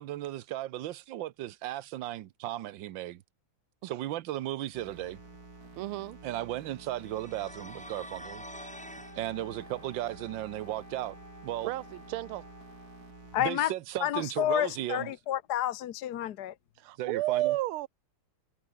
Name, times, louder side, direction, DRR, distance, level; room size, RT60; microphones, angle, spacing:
voice 1, 0.0-3.2 3.8-5.2 6.2-8.4 9.1-11.2 11.4-11.7 13.4-15.1 17.0-17.5, right 14 dB, 70° right, 1.4 m, -35 dB
sound 1, 4.7-13.5, right 3 dB, 45° right, 4.9 m, -51 dB
voice 2, 5.7-6.2 11.6-12.4 16.8-17.9, right 16 dB, 85° right, 1.5 m, -32 dB
sound 2, 7.0-9.2, equal, 5° left, 3.8 m, -46 dB
Wind instrument woodwind instrument, 8.5-13.3, left 2 dB, 40° left, 7.2 m, -53 dB
voice 3, 13.3-13.7 14.0-16.5, left 12 dB, 60° left, 1.2 m, -30 dB
omnidirectional pair, 2.3 m